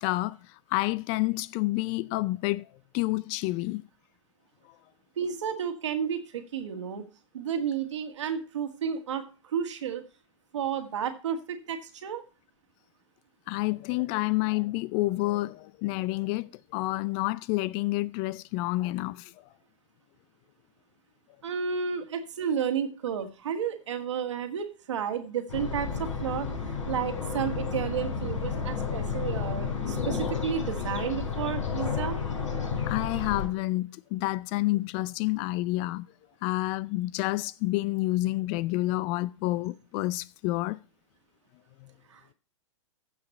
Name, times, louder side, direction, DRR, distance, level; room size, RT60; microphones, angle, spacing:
voice 1, 0.0-2.7 2.9-3.8 13.5-19.3 32.9-36.1 36.4-40.8 41.8-41.9, left 19 dB, 35° left, 0.4 m, -29 dB
voice 2, 5.2-7.0 7.3-10.0 10.5-12.2 21.4-32.2 42.1-42.3, right 7 dB, 70° right, 1.9 m, -32 dB
sound 1, 25.5-33.5, left 5 dB, 80° left, 4.9 m, -31 dB
15.0 x 5.8 x 4.3 m
hypercardioid pair, 110°, 16 cm